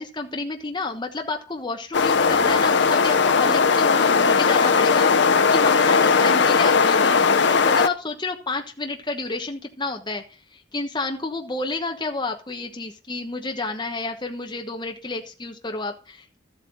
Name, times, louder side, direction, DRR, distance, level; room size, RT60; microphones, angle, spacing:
voice 1, 0.0-16.4, left 3 dB, 25° left, 4 dB, 1.1 m, -30 dB
sound 1, 1.9-7.9, left 5 dB, 65° left, 0.6 m, -18 dB
13.0 x 8.3 x 3.9 m, 0.36 s
head